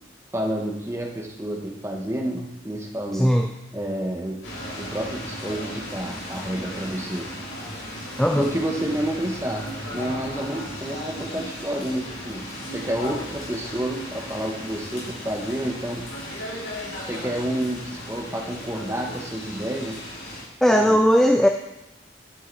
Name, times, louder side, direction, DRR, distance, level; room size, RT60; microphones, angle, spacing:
voice 1, 0.3-3.3 3.7-4.4 4.7-7.3 8.3-16.1 17.0-20.0 20.7-21.0, right 1 dB, 15° right, 1 dB, 1.1 m, -29 dB
voice 2, 3.1-3.5 8.2-8.5 20.6-21.5, equal, ahead, 5 dB, 0.3 m, -18 dB
sound 1, 4.4-20.4, equal, 80° left, 3.6 m, -36 dB
9.9 x 7.7 x 4.0 m, 0.90 s
head